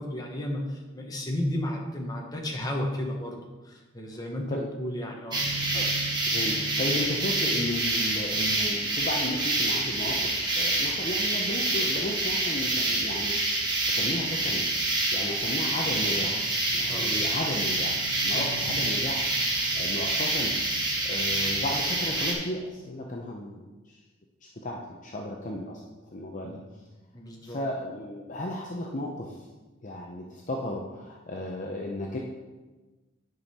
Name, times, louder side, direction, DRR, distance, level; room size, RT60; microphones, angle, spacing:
voice 1, 0.0-3.4 3.6-5.4 16.9-17.2 18.4-18.5 26.4-26.6 27.1-27.6, left 1 dB, 20° left, 0 dB, 1.1 m, -33 dB
sound 1, 5.3-22.3, right 2 dB, 20° right, 1.3 m, -27 dB
voice 2, 6.3-13.6 13.9-14.6 15.1-16.5 16.7-19.2 19.5-20.5 21.0-24.0 24.4-25.8 26.1-26.6 27.4-29.4 29.8-32.2, left 1 dB, 35° left, -1 dB, 0.6 m, -34 dB
9.9 x 5.3 x 4.3 m, 1.2 s
head